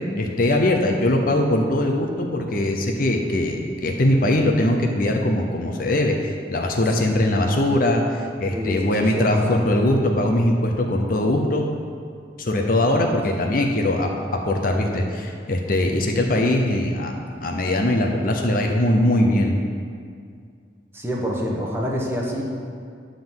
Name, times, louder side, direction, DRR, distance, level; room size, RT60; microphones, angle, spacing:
voice 1, 0.2-11.6 12.4-14.1 14.5-17.1 17.4-19.5, left 1 dB, 45° left, 2 dB, 0.7 m, -21 dB
voice 2, 8.5-9.6 20.9-22.4, equal, 15° right, -2 dB, 1.0 m, -27 dB
10.0 x 3.8 x 7.2 m, 2.2 s
head